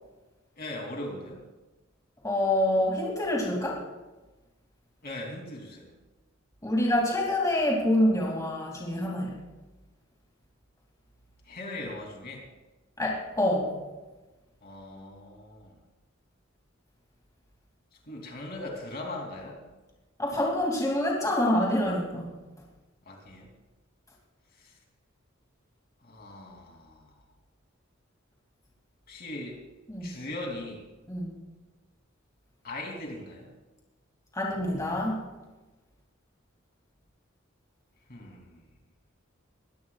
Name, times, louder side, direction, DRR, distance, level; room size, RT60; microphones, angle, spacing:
voice 1, 0.5-1.4 5.0-5.9 11.4-12.4 14.6-15.8 18.1-19.6 23.0-23.5 24.6-24.7 26.0-27.1 29.1-29.6 30.0-30.8 32.6-33.5 38.1-38.6, left 1 dB, 50° left, 0 dB, 3.1 m, -39 dB
voice 2, 2.2-3.8 6.6-9.3 13.0-13.7 20.2-22.4 29.9-30.1 31.1-31.4 34.3-35.2, left 1 dB, 15° left, -2 dB, 2.7 m, -26 dB
22.0 x 16.5 x 2.4 m, 1.2 s
head